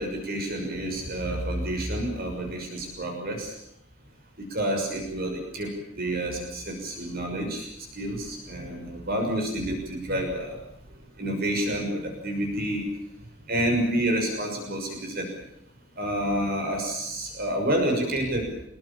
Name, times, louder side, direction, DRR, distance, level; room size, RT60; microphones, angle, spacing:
voice 1, 0.0-3.5 4.5-10.5 11.2-12.8 13.5-15.3 16.0-18.5, right 1 dB, 45° right, 2 dB, 6.4 m, -29 dB
27.0 x 21.5 x 7.1 m, 0.78 s
head